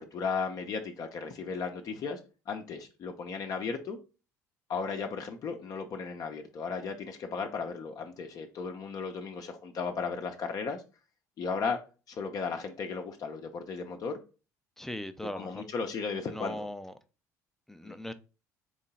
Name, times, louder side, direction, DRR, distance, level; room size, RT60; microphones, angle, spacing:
voice 1, 0.0-2.2 2.5-4.0 4.7-10.8 11.4-11.8 12.1-14.2 15.3-16.7 17.8-18.0, left 5 dB, 45° left, 0.7 m, -35 dB
voice 2, 14.8-15.7 16.3-16.9 17.7-18.1, left 1 dB, 5° left, 0.5 m, -39 dB
3.7 x 3.2 x 4.1 m
figure-of-eight pair, 55°, 9 cm